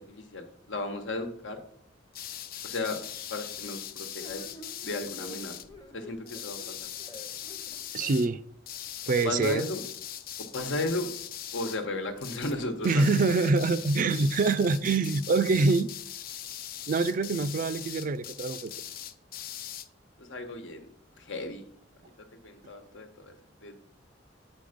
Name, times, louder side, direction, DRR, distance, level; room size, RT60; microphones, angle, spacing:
voice 1, 0.0-1.6 2.6-3.0 3.3-4.4 4.8-5.6 5.9-6.9 9.2-9.8 10.5-11.1 11.5-13.5 20.2-20.9 21.2-21.6 22.4-23.3 23.6-23.8, left 2 dB, 85° left, 1.2 m, -34 dB
sound 1, 2.1-5.7 6.3-8.3 8.7-11.9 12.2-12.6 12.8-19.9, left 10 dB, 50° left, 0.5 m, -41 dB
sound 2, 4.2-8.3, left 1 dB, 20° left, 0.8 m, -49 dB
voice 2, 7.9-8.4 9.1-9.7 12.8-15.9 16.9-18.7, right 3 dB, 45° right, 0.4 m, -25 dB
7.8 x 5.1 x 5.1 m
head